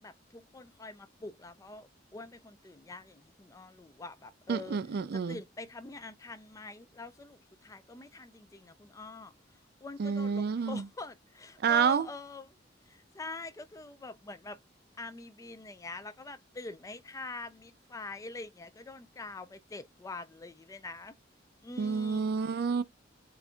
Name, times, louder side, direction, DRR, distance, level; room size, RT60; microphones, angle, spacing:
voice 1, 0.0-4.8 5.1-9.3 9.8-12.5 12.9-14.6 15.0-21.1 21.6-22.3, left 2 dB, 15° left, 0.3 m, -45 dB
voice 2, 4.5-5.4 10.0-10.8 11.6-12.1 21.8-22.8, right 6 dB, 55° right, 0.4 m, -29 dB
6.9 x 2.5 x 2.3 m
head